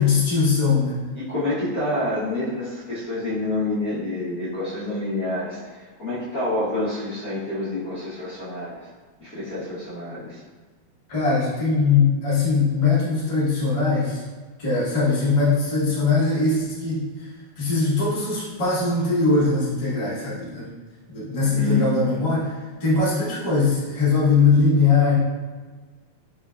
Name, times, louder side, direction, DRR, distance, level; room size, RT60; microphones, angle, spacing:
voice 1, 0.0-1.0 11.1-14.2 14.6-17.3 17.6-20.7 21.1-25.2, left 4 dB, 65° left, -9 dB, 0.3 m, -21 dB
voice 2, 1.1-8.8 9.2-10.4 21.4-21.9, left 1 dB, 85° left, -11 dB, 0.7 m, -28 dB
5.1 x 3.7 x 2.3 m, 1.4 s
omnidirectional pair, 3.4 m